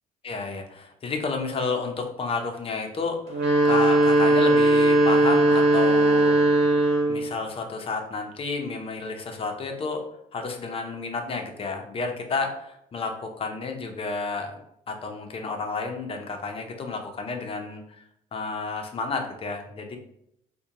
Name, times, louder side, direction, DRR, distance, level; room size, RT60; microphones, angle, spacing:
voice 1, 0.2-6.3 7.1-10.0 10.3-18.0 18.3-20.0, left 4 dB, 35° left, 4 dB, 0.6 m, -31 dB
sound 1, 3.3-7.3, right 1 dB, 85° right, 0.9 m, -19 dB
4.8 x 2.2 x 2.8 m, 0.77 s
cardioid pair, 110°, 17 cm